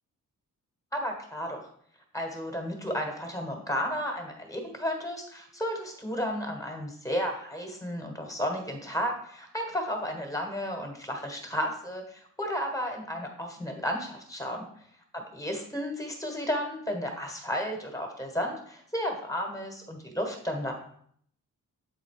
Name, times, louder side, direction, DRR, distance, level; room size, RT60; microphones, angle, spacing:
voice 1, 0.9-1.6 2.1-14.7 15.1-20.7, equal, 10° left, 3 dB, 1.5 m, -33 dB
8.3 x 4.0 x 4.8 m, 0.64 s
wide cardioid pair, 115°, 34 cm